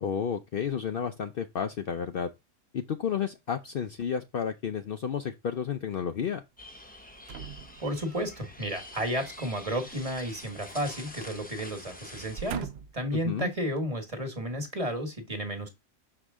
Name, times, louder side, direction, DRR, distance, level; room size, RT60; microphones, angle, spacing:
voice 1, 0.0-2.3 2.7-6.4 13.2-13.5, left 7 dB, 55° left, 0.7 m, -31 dB
sound 1, 6.6-12.5, left 1 dB, 10° left, 0.8 m, -46 dB
sound 2, 7.3-8.4 9.9-11.1 11.4-11.6 12.1-13.1 13.8-13.9, right 8 dB, 60° right, 0.8 m, -42 dB
voice 2, 7.8-15.7, equal, 30° right, 1.5 m, -32 dB
6.6 x 4.9 x 3.6 m
omnidirectional pair, 1.3 m